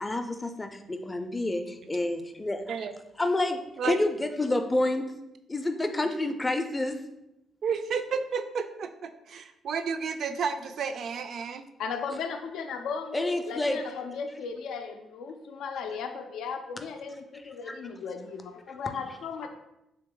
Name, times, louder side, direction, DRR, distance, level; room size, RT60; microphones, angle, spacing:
voice 1, 0.0-2.6 3.2-5.1 5.5-7.0 13.1-13.8 17.7-17.8, left 2 dB, 20° left, 6 dB, 0.4 m, -28 dB
voice 2, 7.6-11.6, right 6 dB, 60° right, 9 dB, 0.3 m, -32 dB
voice 3, 11.8-19.5, left 5 dB, 80° left, 6 dB, 0.3 m, -36 dB
3.4 x 2.9 x 3.7 m, 0.88 s
cardioid pair, 90°, 0 cm